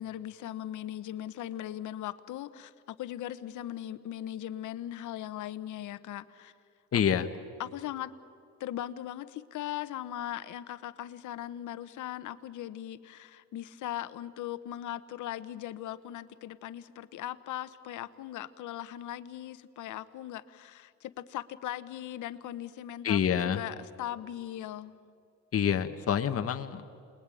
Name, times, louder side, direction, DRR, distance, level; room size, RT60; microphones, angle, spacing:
voice 1, 0.0-6.5 6.9-7.3 7.6-8.1 8.6-25.0, left 12 dB, 80° left, 13 dB, 1.0 m, -39 dB
voice 2, 6.9-7.3 23.0-23.6 25.5-26.8, left 8 dB, 50° left, 7 dB, 1.4 m, -27 dB
28.5 x 21.0 x 9.1 m, 2.4 s
cardioid pair, 90°, 30 cm